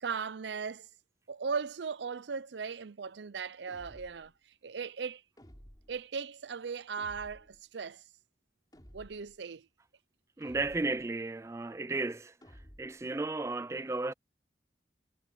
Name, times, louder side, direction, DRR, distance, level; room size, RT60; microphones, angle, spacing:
voice 1, 0.0-0.9 1.3-4.3 4.6-5.2 5.9-8.0 8.9-9.7, right 5 dB, 85° right, 0.6 m, -38 dB
sound 1, 3.7-4.3 5.4-6.1 7.0-7.6 8.7-9.4 10.4-11.1 12.4-13.1, equal, 20° left, 4.4 m, -55 dB
voice 2, 10.4-12.3 12.8-14.1, right 3 dB, 15° right, 0.3 m, -34 dB
head